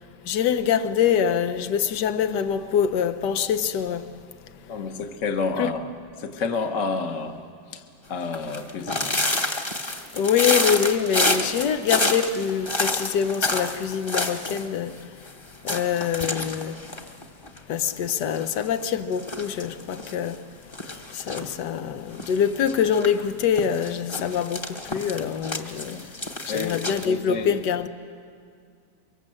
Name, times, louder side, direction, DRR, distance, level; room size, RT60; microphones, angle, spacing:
voice 1, 0.3-4.1 5.6-5.7 10.1-15.0 15.6-16.8 17.7-20.4 20.9-26.0 26.5-27.9, left 8 dB, 80° left, 1.5 m, -25 dB
voice 2, 4.7-5.9 6.2-7.4 7.7-9.3 25.9-26.1 26.5-27.5, left 4 dB, 50° left, 1.4 m, -30 dB
sound 1, 8.2-14.7 14.9-15.0 15.3-15.4 15.7-17.7 18.1-18.7 19.1-20.1 20.7-21.6 22.1-23.1 23.6-27.1, left 2 dB, 20° left, 1.0 m, -28 dB
24.5 x 23.5 x 7.6 m
omnidirectional pair, 1.8 m